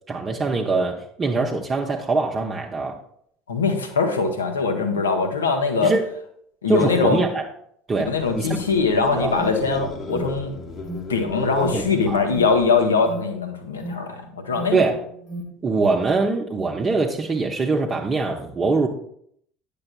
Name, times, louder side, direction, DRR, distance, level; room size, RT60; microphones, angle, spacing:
voice 1, 0.1-3.0 5.8-6.0 6.7-7.4 7.9-8.5 9.1-9.4 11.7-12.3 14.7-15.0 15.6-18.9, right 3 dB, 25° right, 0 dB, 0.6 m, -23 dB
voice 2, 3.5-5.9 6.6-7.2 8.1-10.5 11.1-14.8, left 4 dB, 75° left, 6 dB, 0.8 m, -22 dB
sound 1, 8.1-13.2, left 3 dB, 40° left, 0.9 m, -35 dB
Alarm, 8.7-15.5, right 1 dB, 55° left, 1.4 m, -37 dB
9.5 x 6.8 x 2.2 m, 0.68 s
figure-of-eight pair, 65°, 0 cm